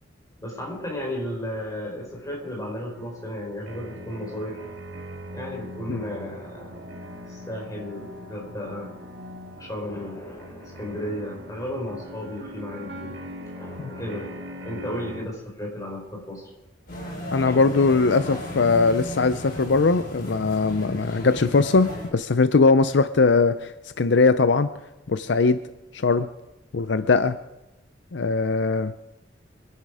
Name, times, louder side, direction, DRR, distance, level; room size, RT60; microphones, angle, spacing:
voice 1, 0.4-4.7 5.3-6.8 7.3-8.9 9.6-13.2 13.5-16.5 17.4-18.0, left 1 dB, 20° left, -1 dB, 4.4 m, -34 dB
sound 1, 2.9-15.2, equal, 70° right, 2.2 m, -41 dB
sound 2, 16.9-22.1, left 1 dB, 50° left, 4.5 m, -35 dB
voice 2, 17.3-24.7 25.1-25.6 25.9-26.3 26.7-27.4 28.1-28.9, left 4 dB, 70° left, 12 dB, 0.6 m, -20 dB
25.5 x 11.0 x 4.9 m, 0.94 s
head